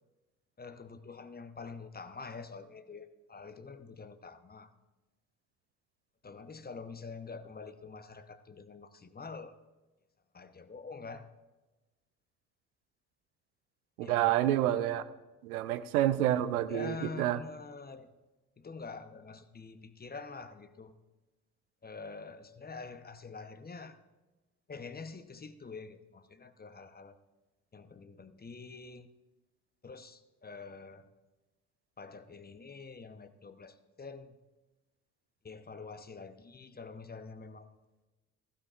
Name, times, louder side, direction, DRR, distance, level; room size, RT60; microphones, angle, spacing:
voice 1, 0.6-4.7 6.2-9.5 10.3-11.3 14.0-14.3 16.7-18.1 18.6-21.0 21.8-24.0 24.7-27.2 27.7-29.1 29.8-31.1 32.0-34.4 35.4-37.8, left 4 dB, 20° left, 11 dB, 0.9 m, -46 dB
voice 2, 14.0-15.0 15.4-17.4, right 13 dB, 80° right, 13 dB, 0.6 m, -28 dB
16.5 x 15.0 x 2.5 m, 1.2 s
hypercardioid pair, 45°, 43 cm